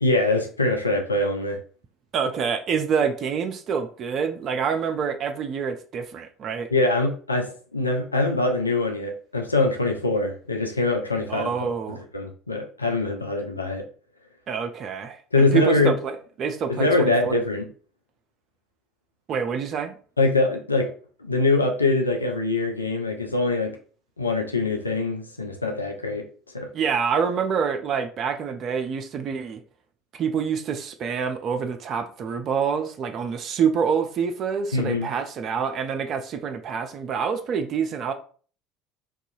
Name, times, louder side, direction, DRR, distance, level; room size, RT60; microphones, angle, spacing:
voice 1, 0.0-1.6 6.7-11.5 11.9-13.9 15.3-16.0 16.7-17.7 20.2-20.9 21.2-23.8 24.2-26.3 26.5-26.7 34.7-35.1, left 2 dB, 85° left, 0.3 m, -23 dB
voice 2, 2.1-6.7 11.3-12.0 14.5-16.1 16.4-17.4 19.3-19.9 26.7-29.6 30.2-38.1, right 6 dB, 40° right, 0.4 m, -26 dB
2.6 x 2.3 x 2.6 m
figure-of-eight pair, 65°, 0 cm